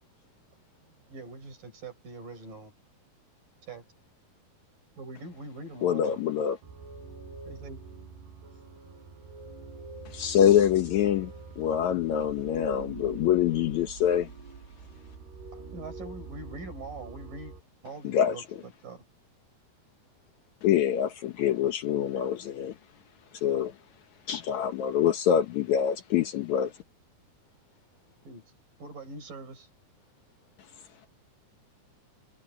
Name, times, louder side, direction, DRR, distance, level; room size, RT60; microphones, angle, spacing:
voice 1, 0.0-1.1 8.2-10.4 15.1-15.8 19.8-20.7 22.1-22.2 24.1-24.2 27.4-28.4 30.0-31.1, left 7 dB, 50° left, 5.5 m, -73 dB
voice 2, 0.8-2.7 3.7-3.8 5.0-6.2 7.4-7.8 15.5-17.5 17.8-19.0 28.2-28.4 28.8-29.7, right 3 dB, 55° right, 8.0 m, -43 dB
voice 3, 5.8-6.6 10.0-14.3 18.0-18.4 20.6-22.8 23.4-23.7 24.3-26.7, left 9 dB, 75° left, 1.7 m, -25 dB
sound 1, 6.6-17.6, right 4 dB, 85° right, 7.1 m, -45 dB
omnidirectional pair, 4.7 m